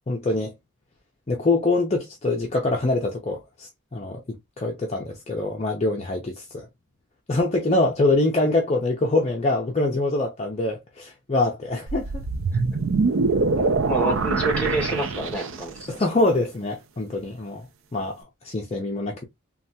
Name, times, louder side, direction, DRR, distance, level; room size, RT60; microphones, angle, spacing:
voice 1, 0.1-0.5 1.3-6.7 7.3-12.2 15.9-17.7 17.9-19.2, left 2 dB, 30° left, 0.5 m, -24 dB
sound 1, 11.9-15.8, right 3 dB, 55° right, 0.4 m, -24 dB
voice 2, 13.9-15.9 16.4-16.5, right 2 dB, 5° left, 0.9 m, -28 dB
3.2 x 2.3 x 2.6 m
head